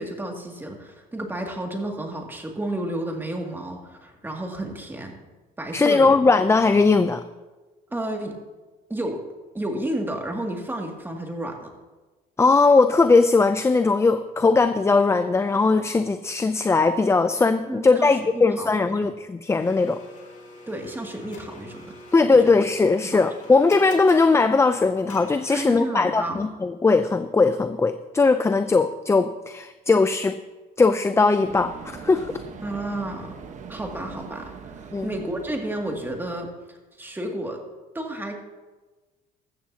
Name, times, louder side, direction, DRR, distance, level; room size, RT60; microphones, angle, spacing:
voice 1, 0.0-5.2 5.6-6.2 7.9-8.4 8.9-9.2 9.5-11.7 17.7-19.1 20.7-22.0 23.0-23.2 25.5-26.4 32.6-33.3 33.7-36.5 37.0-37.6 37.9-38.3, right 1 dB, 10° right, 1 dB, 2.3 m, -31 dB
voice 2, 5.7-7.2 12.4-20.0 22.1-30.4 30.8-32.3 34.9-35.1, left 3 dB, 15° left, 10 dB, 0.5 m, -19 dB
Domestic sounds home sounds, 19.6-26.1, left 2 dB, 45° left, 2.5 m, -45 dB
sound 1, 31.4-36.5, right 6 dB, 45° right, 1.2 m, -41 dB
15.5 x 13.5 x 2.8 m, 1.2 s
cardioid pair, 110°, 17 cm